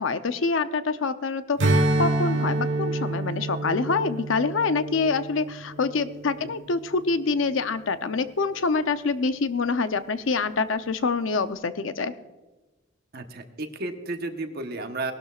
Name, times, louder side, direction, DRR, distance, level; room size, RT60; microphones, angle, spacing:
voice 1, 0.0-12.1, left 4 dB, 75° left, 11 dB, 0.7 m, -26 dB
Strum, 1.6-6.4, right 2 dB, 70° right, 1.2 m, -27 dB
voice 2, 13.1-15.1, right 2 dB, 55° right, 6 dB, 1.1 m, -33 dB
19.0 x 12.5 x 2.4 m, 1.2 s
head